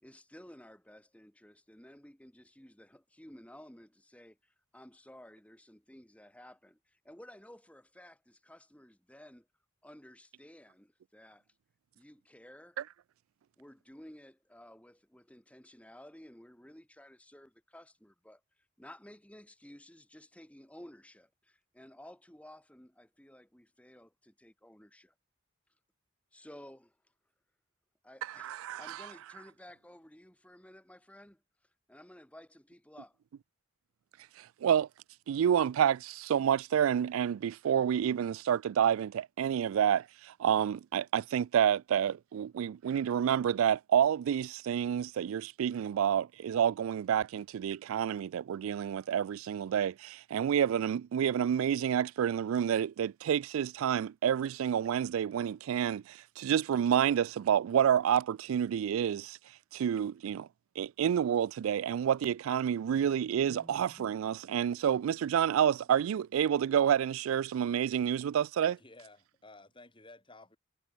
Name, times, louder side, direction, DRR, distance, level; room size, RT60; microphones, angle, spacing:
voice 1, 0.0-9.5 9.8-11.4 11.9-12.8 13.6-18.4 18.8-25.1 26.3-27.0 28.0-33.2, left 1 dB, 5° left, 1.5 m, -54 dB
voice 2, 28.4-29.0 34.6-34.9 35.3-59.4 59.7-60.5 60.8-68.8, right 9 dB, 85° right, 0.3 m, -29 dB
sound 1, 63.0-67.6, equal, 15° right, 5.1 m, -60 dB
voice 3, 68.8-70.6, left 2 dB, 25° left, 4.2 m, -54 dB
head